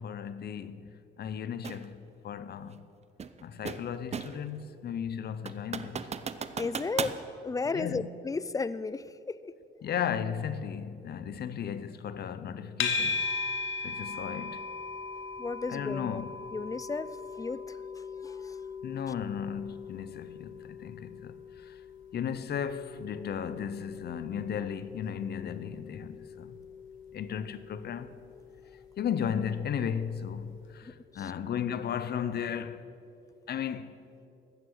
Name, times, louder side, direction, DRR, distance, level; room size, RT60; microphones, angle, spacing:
voice 1, 0.0-2.9 3.4-6.1 7.7-8.1 9.8-13.3 13.8-14.6 15.7-16.3 18.8-21.8 22.1-26.6 27.1-28.2 29.0-32.9 33.5-33.9, left 8 dB, 55° left, 0.7 m, -35 dB
sound 1, 1.6-1.9 3.2-4.5 4.9-5.0 5.5-7.2, right 6 dB, 35° right, 0.5 m, -36 dB
voice 2, 6.6-7.2 7.4-9.5 15.4-16.2 16.5-18.6 30.8-31.3, left 4 dB, 15° left, 0.4 m, -35 dB
sound 2, 12.8-30.0, left 4 dB, 75° left, 1.2 m, -39 dB
15.0 x 7.2 x 6.5 m
cardioid pair, 90°, 20 cm